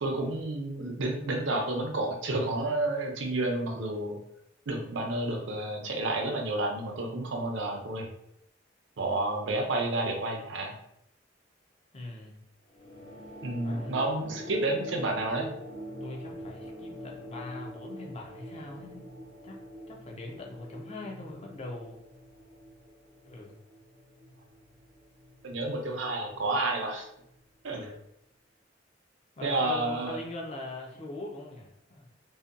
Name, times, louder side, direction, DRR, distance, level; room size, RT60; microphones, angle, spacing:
voice 1, 0.0-4.2 4.7-8.1 9.0-10.7 13.4-15.5 25.4-27.1 27.6-27.8 29.4-30.2, right 2 dB, 75° right, 2 dB, 0.5 m, -30 dB
voice 2, 11.9-12.4 13.6-14.0 16.0-19.0 19.4-22.0 23.2-23.6 27.7-27.9 29.4-32.1, left 2 dB, 35° left, -1 dB, 0.5 m, -42 dB
sound 1, 12.7-27.6, equal, 50° left, 1.0 m, -45 dB
2.7 x 2.2 x 2.5 m, 0.76 s
head